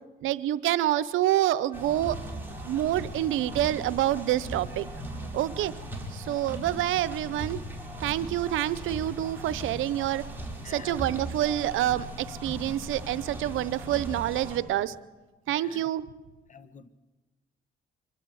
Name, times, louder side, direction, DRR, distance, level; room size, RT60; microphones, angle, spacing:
voice 1, 0.2-2.2 2.6-4.9 5.3-5.7 6.1-7.6 8.0-10.2 10.7-14.9 15.5-16.0, right 13 dB, 85° right, 0.8 m, -27 dB
sound 1, 1.7-14.6, right 1 dB, 10° right, 4.4 m, -38 dB
voice 2, 10.6-11.3 15.5-15.9 16.5-16.9, left 5 dB, 40° left, 1.3 m, -48 dB
24.5 x 12.0 x 9.2 m
cardioid pair, 90°, 20 cm